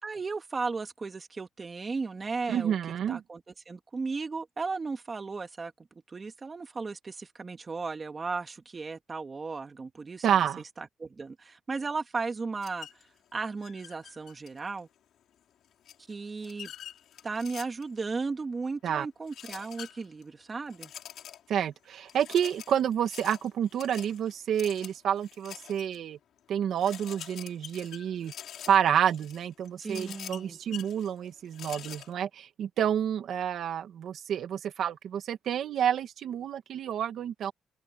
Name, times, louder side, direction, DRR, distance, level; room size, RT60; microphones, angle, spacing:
voice 1, 0.0-2.8 3.1-3.4 3.7-5.7 6.1-10.3 10.8-12.9 13.3-14.9 16.1-16.7 17.2-20.9 29.8-30.6, right 4 dB, 30° right, 2.5 m, -35 dB
voice 2, 2.5-3.2 10.2-10.6 18.8-19.1 21.5-26.2 26.5-28.3 28.7-37.5, right 9 dB, 65° right, 2.2 m, -29 dB
sound 1, 12.6-13.0 13.6-14.8 15.9-18.0 19.3-20.2 20.7-21.6 22.1-26.0 26.4-26.5 26.8-32.1, left 10 dB, 70° left, 6.8 m, -46 dB
open air
cardioid pair, 105°, 0 cm